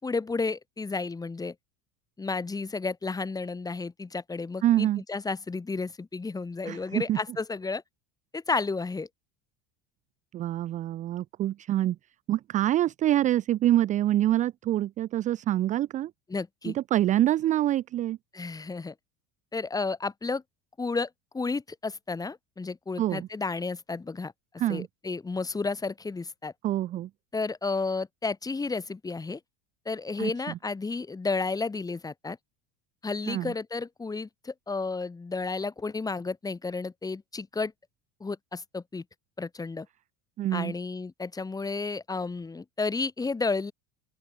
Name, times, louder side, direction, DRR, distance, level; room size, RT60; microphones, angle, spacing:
voice 1, 0.0-1.5 2.2-7.8 8.3-9.1 16.3-16.7 18.3-18.9 19.5-20.4 20.8-24.3 24.7-26.5 27.3-29.4 29.8-32.4 33.0-37.7 38.2-39.0 39.4-39.9 40.5-43.7, left 4 dB, 10° left, 6.3 m, -32 dB
voice 2, 4.6-5.0 6.7-7.2 10.3-12.0 12.3-16.1 16.7-18.2 23.0-23.3 24.6-24.9 26.6-27.1 30.2-30.3 33.3-33.5 40.4-40.7, right 13 dB, 25° right, 0.4 m, -26 dB
open air
cardioid pair, 170°, 33 cm